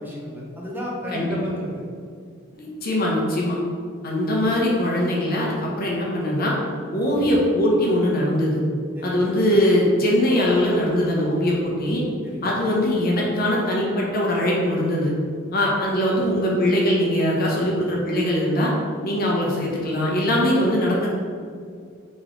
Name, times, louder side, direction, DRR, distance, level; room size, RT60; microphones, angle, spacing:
voice 1, 0.0-1.8 8.9-9.3 12.2-12.6, equal, 10° right, -4 dB, 0.6 m, -33 dB
voice 2, 2.5-3.6 4.0-6.5 6.9-8.6 9.0-12.0 12.4-15.1 15.5-18.7 19.0-21.1, left 1 dB, 50° left, -3 dB, 0.8 m, -21 dB
3.1 x 3.1 x 3.9 m, 2.2 s
head